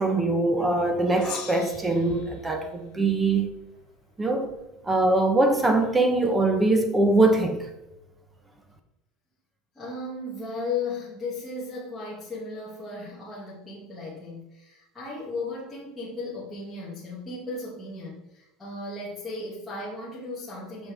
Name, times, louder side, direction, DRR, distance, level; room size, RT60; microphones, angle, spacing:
voice 1, 0.0-3.5 4.2-4.5 4.8-7.7, right 2 dB, 10° right, 0.7 m, -22 dB
Gong, 1.2-3.8, left 9 dB, 75° left, 1.3 m, -43 dB
voice 2, 9.7-20.9, left 3 dB, 10° left, 1.2 m, -35 dB
6.2 x 5.5 x 3.4 m
cardioid pair, 170°, 0 cm